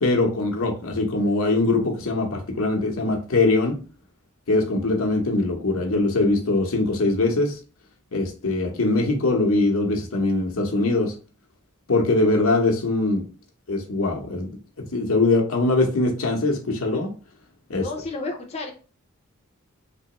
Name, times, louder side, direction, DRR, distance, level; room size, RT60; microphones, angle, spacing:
voice 1, 0.0-3.8 4.5-7.6 8.1-11.1 11.9-13.2 13.7-14.6 14.9-17.1 17.7-17.8, left 2 dB, 80° left, 2 dB, 0.9 m, -22 dB
voice 2, 17.7-18.7, left 2 dB, 30° left, 2 dB, 0.6 m, -31 dB
3.5 x 3.0 x 2.9 m, 0.37 s
head